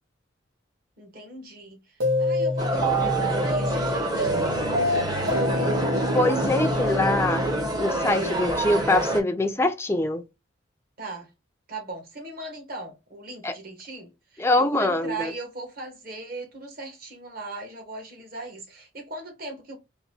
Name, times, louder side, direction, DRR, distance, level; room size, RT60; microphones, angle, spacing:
voice 1, 1.0-5.7 6.6-7.3 11.0-11.3 11.7-19.8, right 2 dB, 50° right, 1.2 m, -39 dB
sound 1, 2.0-8.2, equal, 90° right, 1.4 m, -27 dB
sound 2, 2.6-9.2, right 1 dB, 20° right, 0.7 m, -27 dB
voice 2, 6.1-7.5 7.8-10.2 13.4-13.5 14.4-15.3, left 1 dB, 15° left, 0.4 m, -24 dB
3.9 x 2.6 x 2.9 m
head